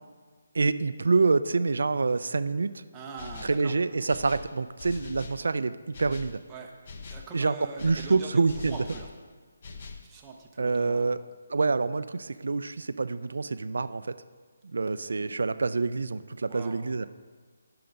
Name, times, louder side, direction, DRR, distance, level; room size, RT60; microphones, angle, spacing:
voice 1, 0.5-2.8 3.4-6.4 7.3-7.6 7.8-8.8 10.6-11.2 11.5-14.1 14.6-17.1, right 4 dB, 75° right, 14 dB, 0.4 m, -27 dB
voice 2, 2.9-3.7 6.5-6.7 7.1-9.1 10.0-11.2 15.1-15.4 16.5-16.8, right 4 dB, 10° right, -1 dB, 0.7 m, -43 dB
sound 1, 3.2-3.7 4.1-5.5 5.9-6.4 6.8-7.3 7.8-9.1 9.6-10.1, left 4 dB, 40° left, 0.7 m, -43 dB
11.5 x 5.7 x 5.3 m, 1.5 s
hypercardioid pair, 170°, 0 cm